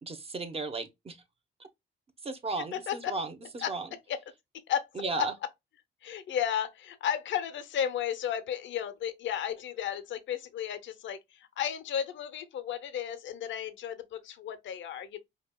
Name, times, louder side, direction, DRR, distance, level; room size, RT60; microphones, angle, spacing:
voice 1, 0.0-1.2 2.2-3.9 5.0-5.3, right 3 dB, 30° right, 0.9 m, -35 dB
voice 2, 2.7-3.1 3.6-3.7 4.1-4.2 4.5-4.9 5.1-5.3 6.0-15.2, left 9 dB, 70° left, 0.8 m, -33 dB
5.1 x 2.5 x 2.2 m
cardioid pair, 90°, 20 cm